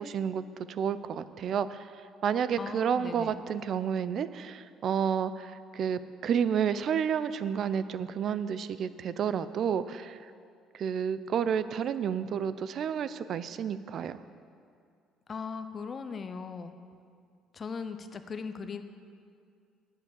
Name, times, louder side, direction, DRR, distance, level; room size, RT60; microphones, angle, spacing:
voice 1, 0.0-10.3 10.7-14.2, right 7 dB, 45° right, 14 dB, 0.4 m, -30 dB
voice 2, 2.6-3.4 15.3-16.8 17.5-18.8, left 5 dB, 30° left, 9 dB, 0.5 m, -38 dB
8.4 x 7.1 x 8.0 m, 2.3 s
cardioid pair, 150°, 0 cm